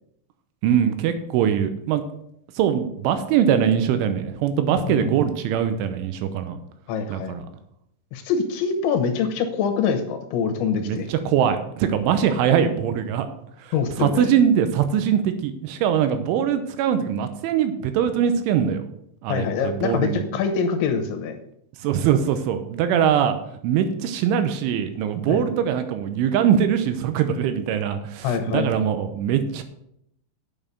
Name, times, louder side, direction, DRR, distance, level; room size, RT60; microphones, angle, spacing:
voice 1, 0.6-2.0 2.6-6.6 7.1-7.5 10.8-13.3 13.6-18.8 19.2-20.2 21.8-23.4 23.6-29.6, right 8 dB, 80° right, 9 dB, 3.1 m, -22 dB
voice 2, 4.9-5.2 6.9-7.4 8.1-11.1 13.7-14.3 19.3-21.4 25.3-25.4 28.2-28.9, left 6 dB, 75° left, 6 dB, 3.0 m, -25 dB
9.0 x 7.1 x 6.7 m, 0.74 s
omnidirectional pair, 5.8 m